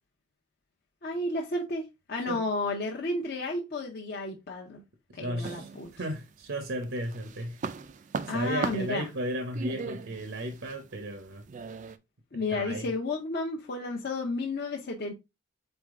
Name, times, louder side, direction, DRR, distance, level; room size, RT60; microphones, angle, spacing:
voice 1, 1.0-4.8 5.1-5.9 8.3-9.1 12.3-15.1, left 2 dB, 50° left, 0.7 m, -32 dB
voice 2, 5.1-7.6 8.3-11.4 12.3-12.9, right 1 dB, 70° right, 0.7 m, -35 dB
sound 1, 5.4-6.4 6.8-12.0, right 5 dB, 35° right, 0.3 m, -38 dB
4.1 x 3.5 x 3.5 m
head